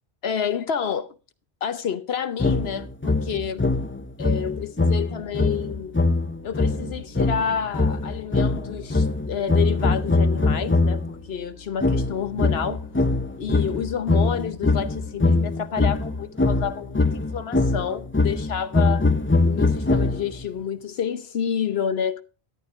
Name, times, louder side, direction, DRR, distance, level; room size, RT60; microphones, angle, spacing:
voice 1, 0.2-1.1 1.6-3.6 4.2-5.9 6.4-12.9 13.4-19.1 19.4-22.2, left 7 dB, 70° left, 1.1 m, -29 dB
sound 1, 2.4-11.1 11.8-20.5, left 3 dB, 15° left, 0.5 m, -22 dB
sound 2, 5.1-15.4, left 5 dB, 40° left, 5.5 m, -47 dB
13.5 x 11.5 x 2.5 m
omnidirectional pair, 1.1 m